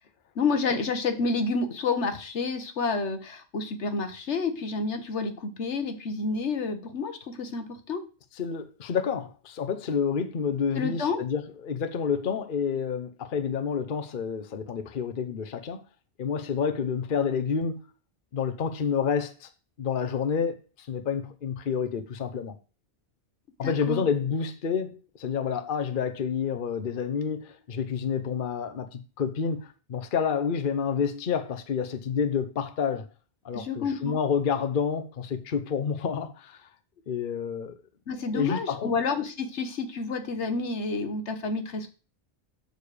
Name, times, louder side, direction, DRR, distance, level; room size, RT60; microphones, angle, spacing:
voice 1, 0.3-8.0 10.7-11.2 23.6-24.0 33.5-34.2 38.1-41.9, left 4 dB, 80° left, 1.5 m, -29 dB
voice 2, 8.4-15.8 16.2-17.8 18.3-19.5 19.8-22.5 23.6-33.1 33.4-36.6 37.1-37.8 38.3-38.9, left 6 dB, 50° left, 0.9 m, -29 dB
6.9 x 6.7 x 4.9 m
omnidirectional pair, 1.2 m